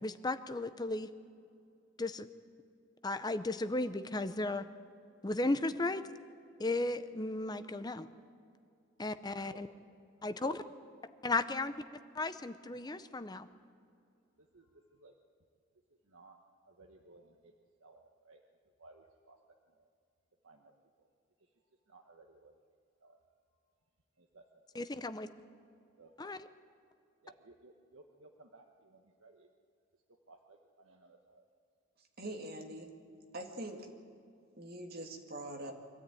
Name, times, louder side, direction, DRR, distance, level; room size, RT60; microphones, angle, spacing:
voice 1, 0.0-1.1 2.0-2.3 3.0-4.7 5.2-6.1 6.6-8.1 9.0-9.7 10.2-10.6 11.2-11.7 12.1-13.5 24.7-25.3 26.2-26.4, left 2 dB, 20° left, 11 dB, 0.6 m, -35 dB
voice 2, 14.4-15.1 16.0-16.4 16.7-17.5 17.8-18.4 18.8-19.4 19.7-19.9 20.4-20.7 21.0-21.1 21.4-21.5 21.9-22.6 23.0-23.2 24.2-24.8 26.0-26.4 27.2-29.5 30.3-31.5, right 2 dB, 70° right, 2 dB, 1.1 m, -59 dB
voice 3, 32.0-32.9 33.3-33.9 34.6-35.7, right 1 dB, 45° right, 3 dB, 2.1 m, -43 dB
24.0 x 13.5 x 9.2 m, 2.5 s
head